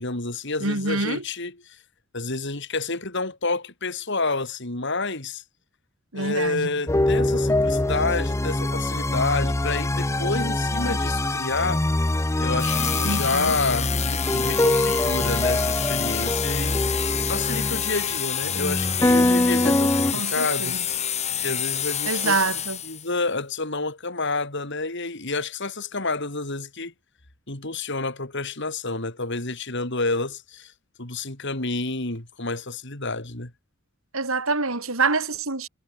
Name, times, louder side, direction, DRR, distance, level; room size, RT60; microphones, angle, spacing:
voice 1, 0.0-1.8 2.1-5.4 6.1-11.8 12.4-20.8 21.4-22.4 22.8-26.9 27.5-30.7 31.0-33.5, left 3 dB, 55° left, 3.7 m, -29 dB
voice 2, 0.6-1.2 6.1-6.7 13.0-13.5 20.1-20.8 22.1-22.8 34.1-35.7, right 3 dB, 70° right, 4.1 m, -26 dB
sound 1, 6.9-20.1, left 1 dB, 15° left, 0.6 m, -24 dB
sound 2, 12.6-23.1, left 9 dB, 30° left, 3.2 m, -28 dB
head